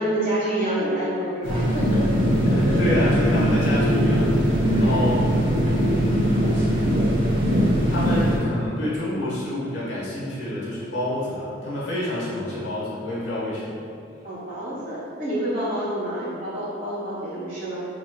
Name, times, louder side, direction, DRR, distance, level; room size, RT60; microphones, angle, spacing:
voice 1, 0.0-2.1 2.4-2.8 4.7-5.1 14.2-17.9, right 1 dB, 45° right, -10 dB, 1.3 m, -28 dB
sound 1, 1.4-8.4, equal, 70° right, 0.7 m, -21 dB
voice 2, 2.5-5.3 5.8-6.4 7.9-13.7, left 1 dB, 75° left, -7 dB, 1.2 m, -28 dB
4.1 x 3.0 x 2.3 m, 2.5 s
head